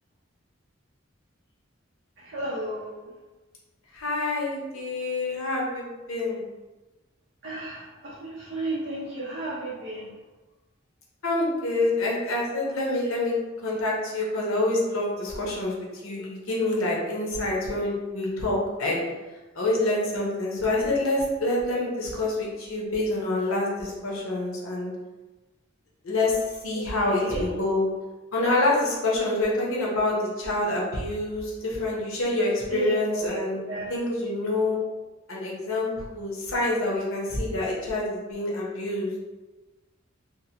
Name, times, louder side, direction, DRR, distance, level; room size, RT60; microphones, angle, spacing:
voice 1, 2.2-3.1 7.4-10.1 26.7-27.5 32.7-34.0, right 1 dB, 55° right, -7 dB, 0.5 m, -34 dB
voice 2, 3.9-6.4 11.2-15.7 16.0-19.0 19.5-24.9 26.0-27.8 28.3-33.6 33.9-34.8 35.3-39.1, left 2 dB, 90° left, -4 dB, 0.8 m, -27 dB
2.8 x 2.1 x 2.8 m, 1.2 s
head